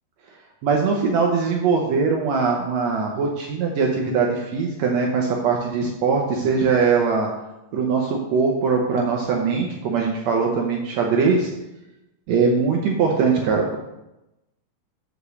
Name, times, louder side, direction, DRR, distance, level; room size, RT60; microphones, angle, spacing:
voice 1, 0.6-7.3 7.7-11.5 12.3-13.8, right 5 dB, 90° right, 0 dB, 1.5 m, -21 dB
6.6 x 4.9 x 6.8 m, 0.95 s
omnidirectional pair, 4.3 m